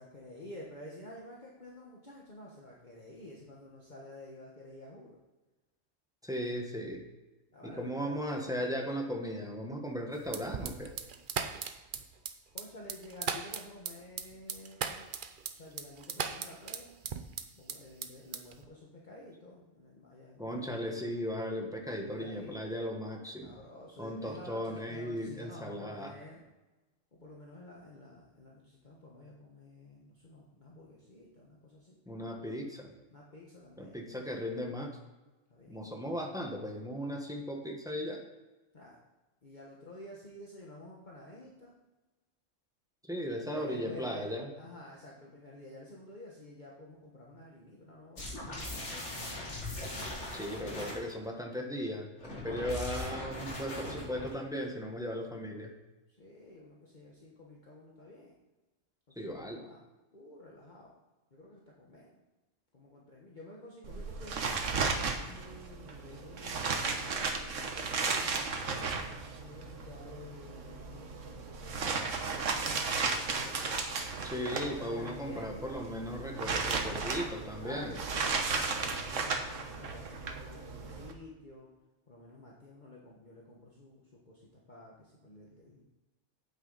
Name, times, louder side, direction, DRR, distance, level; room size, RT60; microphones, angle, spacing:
voice 1, 0.0-5.2 7.5-8.2 12.5-15.1 15.5-16.9 17.6-20.9 22.2-22.6 23.4-26.4 27.1-32.0 33.1-34.3 35.5-35.8 38.7-39.0 39.4-41.8 43.3-49.7 52.3-52.7 56.1-58.3 59.1-59.8 60.1-60.9 61.3-62.2 62.7-64.4 65.1-68.5 69.3-74.0 74.4-75.8 76.8-81.7 82.1-85.8, left 1 dB, 35° left, -4 dB, 1.5 m, -51 dB
voice 2, 6.2-7.0 7.6-10.9 20.4-23.5 24.0-26.1 32.1-32.9 33.8-35.0 35.7-38.2 43.1-44.5 50.3-55.7 59.2-59.6 74.2-77.9, equal, 5° right, 1 dB, 1.2 m, -37 dB
sound 1, 10.3-17.8 18.0-18.6, right 6 dB, 50° right, 0.7 m, -37 dB
sound 2, 48.2-51.1 52.2-54.4, left 1 dB, 65° left, 2.7 m, -40 dB
sound 3, 63.8-81.1, right 4 dB, 75° right, 1.4 m, -35 dB
9.1 x 8.3 x 4.0 m, 1.1 s
omnidirectional pair, 1.3 m